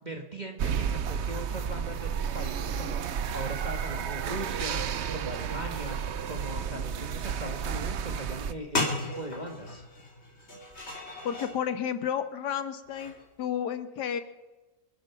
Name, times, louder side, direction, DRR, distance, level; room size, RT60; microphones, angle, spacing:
voice 1, 0.0-6.0 6.3-9.8, right 1 dB, 25° right, 2 dB, 1.3 m, -39 dB
sound 1, 0.6-8.5, right 7 dB, 60° right, 0.7 m, -32 dB
sound 2, 8.4-8.5 8.7-11.6 12.9-13.2, left 2 dB, 35° left, 2.6 m, -34 dB
voice 2, 11.2-14.2, left 8 dB, 70° left, 10 dB, 1.6 m, -31 dB
26.0 x 9.0 x 5.9 m, 1.1 s
omnidirectional pair, 1.9 m